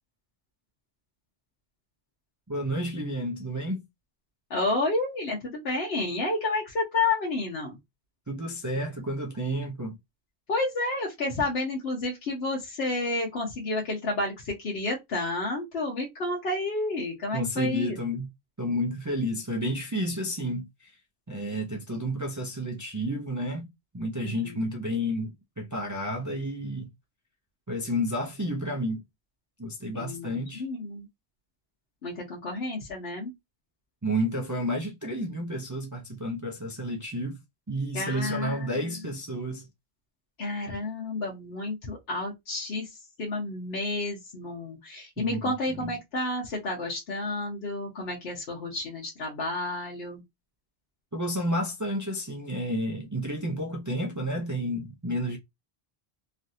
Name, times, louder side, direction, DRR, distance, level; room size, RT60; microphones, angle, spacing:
voice 1, 2.5-3.8 8.3-9.9 17.3-18.3 18.6-20.9 21.3-23.7 23.9-26.9 27.7-29.0 29.6-30.7 34.0-37.4 37.7-39.7 45.2-45.9 51.1-55.4, equal, 25° right, 0.5 m, -31 dB
voice 2, 4.5-7.8 10.5-18.0 24.2-24.7 29.9-31.1 32.0-33.3 37.9-38.7 40.4-50.2, left 2 dB, 90° left, 1.1 m, -31 dB
3.1 x 2.5 x 2.7 m
omnidirectional pair, 1.0 m